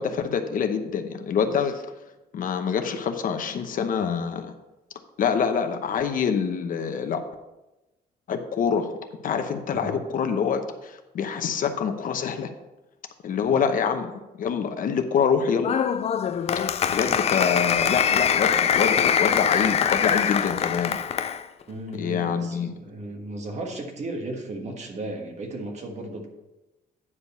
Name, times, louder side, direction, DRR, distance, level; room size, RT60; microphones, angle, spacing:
voice 1, 0.0-1.8 2.3-4.5 5.2-7.2 8.3-8.9 9.2-12.5 13.2-15.8 16.9-21.0 22.0-22.7, left 6 dB, 55° left, 7 dB, 0.8 m, -26 dB
voice 2, 9.7-10.0 13.5-13.6 21.7-26.3, right 2 dB, 45° right, 3 dB, 1.5 m, -35 dB
Applause, 15.6-21.4, left 8 dB, 40° left, 0.4 m, -23 dB
9.7 x 5.1 x 5.5 m, 1.0 s
cardioid pair, 160°, 17 cm